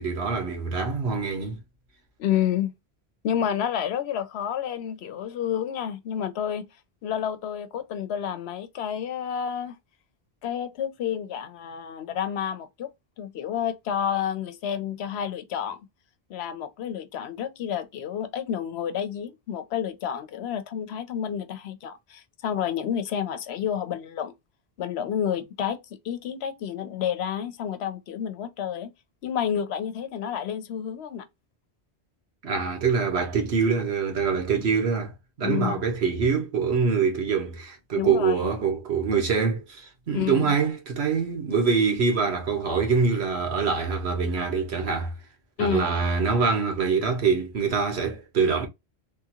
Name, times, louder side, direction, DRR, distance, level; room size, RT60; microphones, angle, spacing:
voice 1, 0.0-1.6 32.4-35.1 35.4-45.1 45.6-48.7, right 5 dB, 85° right, 1.3 m, -24 dB
voice 2, 2.2-2.7 3.2-6.7 7.0-9.8 10.4-12.9 13.2-15.8 16.3-24.3 24.8-28.9 29.2-31.3 35.4-35.8 37.9-38.4 40.1-40.5 45.6-45.8, left 9 dB, 80° left, 0.9 m, -30 dB
3.4 x 2.4 x 2.7 m
omnidirectional pair, 1.1 m